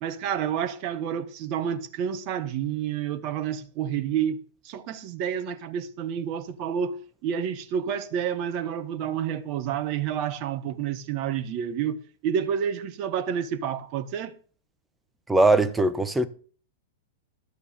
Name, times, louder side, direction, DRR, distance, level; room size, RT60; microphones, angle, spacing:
voice 1, 0.0-14.4, right 8 dB, 40° right, 1.4 m, -29 dB
voice 2, 15.3-16.3, right 2 dB, 5° right, 1.2 m, -20 dB
12.5 x 6.9 x 6.8 m
figure-of-eight pair, 95°, 0 cm